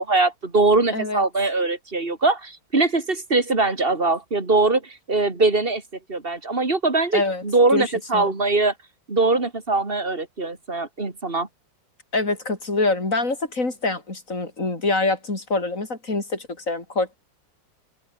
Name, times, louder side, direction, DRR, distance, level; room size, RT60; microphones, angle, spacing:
voice 1, 0.0-5.8 6.1-8.7 9.1-11.5, right 3 dB, 30° right, 2.9 m, -22 dB
voice 2, 7.1-7.4 7.7-8.3 12.1-17.2, left 3 dB, 45° left, 5.3 m, -25 dB
open air
omnidirectional pair, 2.0 m